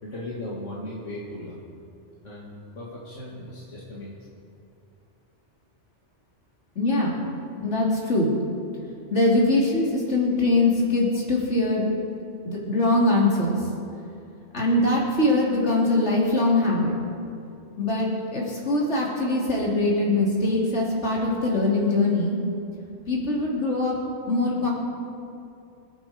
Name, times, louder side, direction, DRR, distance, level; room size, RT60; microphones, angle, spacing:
voice 1, 0.0-1.6 2.2-4.1, left 1 dB, 85° left, -5 dB, 2.5 m, -37 dB
voice 2, 6.7-7.2 7.5-8.3 9.1-11.9 12.4-13.6 14.5-16.9 17.8-22.4 23.1-24.0 24.3-24.7, left 2 dB, 70° left, -3 dB, 3.4 m, -22 dB
25.5 x 8.8 x 5.2 m, 2.6 s
omnidirectional pair, 1.2 m